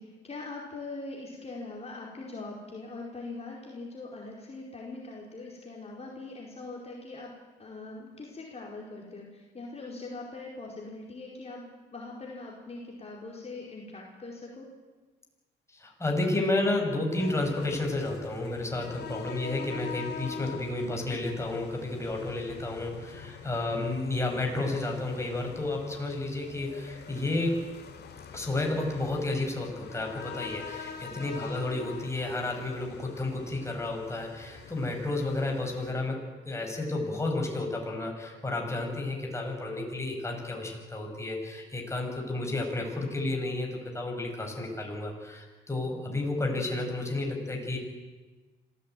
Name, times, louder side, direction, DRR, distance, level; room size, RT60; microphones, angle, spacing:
voice 1, 0.0-11.6 11.9-14.7, left 3 dB, 30° left, -2 dB, 4.8 m, -42 dB
voice 2, 15.7-27.6 28.3-47.8, left 2 dB, 15° left, 1 dB, 6.5 m, -31 dB
sound 1, 17.2-35.9, left 6 dB, 55° left, 2.9 m, -44 dB
26.0 x 16.0 x 9.2 m, 1.3 s
cardioid pair, 90°, 20 cm